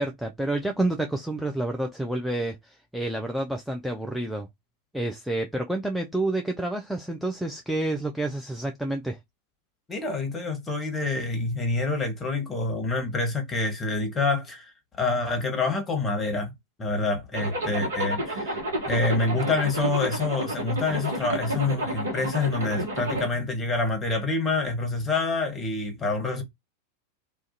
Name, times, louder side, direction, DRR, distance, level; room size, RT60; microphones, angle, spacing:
voice 1, 0.0-4.5 4.9-9.2, right 1 dB, ahead, 0.3 m, -29 dB
voice 2, 9.9-16.5 16.8-26.4, left 3 dB, 20° left, 0.9 m, -27 dB
Zipper (clothing), 17.3-23.3, right 1 dB, 65° right, 0.8 m, -30 dB
2.3 x 2.1 x 2.6 m
figure-of-eight pair, 90°, 0 cm